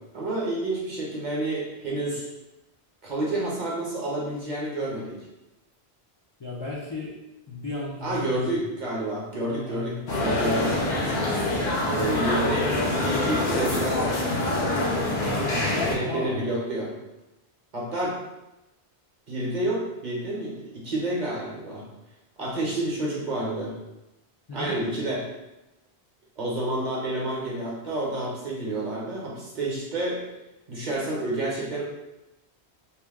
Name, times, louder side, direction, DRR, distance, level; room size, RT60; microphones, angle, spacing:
voice 1, 0.1-2.3 3.0-5.2 8.0-10.8 11.9-12.7 13.0-14.2 15.7-16.9 17.7-18.2 19.3-21.8 22.4-23.7 24.5-25.3 26.4-30.2 30.7-31.8, right 1 dB, 50° right, -4 dB, 0.9 m, -29 dB
voice 2, 6.4-7.1 7.5-8.6 9.4-10.1 15.1-16.4 24.5-24.8, left 2 dB, 40° left, -6 dB, 0.3 m, -35 dB
sound 1, 10.1-15.9, left 2 dB, 70° left, 0.9 m, -25 dB
2.8 x 2.2 x 3.4 m, 0.97 s
omnidirectional pair, 1.1 m